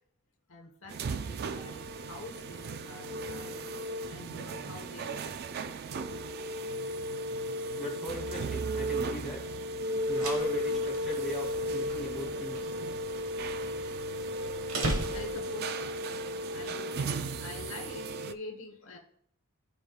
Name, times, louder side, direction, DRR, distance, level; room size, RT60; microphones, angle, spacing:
voice 1, 0.5-3.7 4.1-5.4 5.6-6.3 7.5-7.6 14.7-15.9 16.5-19.0, left 2 dB, 60° left, 3 dB, 1.0 m, -46 dB
sound 1, 0.9-18.3, right 1 dB, 45° right, 0.3 m, -35 dB
voice 2, 7.7-9.4 10.1-12.7, left 1 dB, ahead, -2 dB, 2.2 m, -39 dB
sound 2, 9.9-15.7, right 2 dB, 65° right, 1.2 m, -39 dB
13.5 x 5.0 x 2.2 m, 0.66 s
head